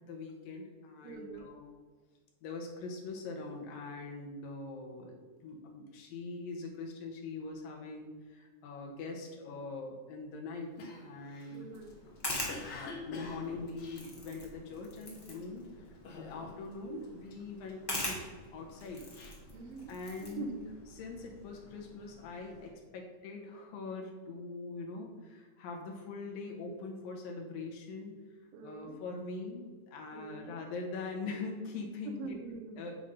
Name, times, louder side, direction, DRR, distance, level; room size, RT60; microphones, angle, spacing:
voice 1, 0.1-1.7 2.4-5.2 5.4-10.7 11.0-11.7 12.3-19.1 19.9-20.6 20.9-32.4 32.8-33.0, left 3 dB, 85° left, 1 dB, 3.0 m, -43 dB
voice 2, 1.0-1.5 11.5-12.0 19.5-19.9 20.3-20.5 28.5-29.0 30.1-30.6 32.1-32.8, right 4 dB, 85° right, 4 dB, 2.7 m, -43 dB
Cough, 10.8-14.9 15.3-15.7 16.0-16.8 17.0-18.2 18.7-20.2, left 3 dB, 60° left, 1.6 m, -47 dB
sound 1, 11.7-22.7, left 1 dB, 15° left, 0.8 m, -44 dB
9.3 x 3.8 x 5.4 m, 1.4 s
omnidirectional pair, 4.0 m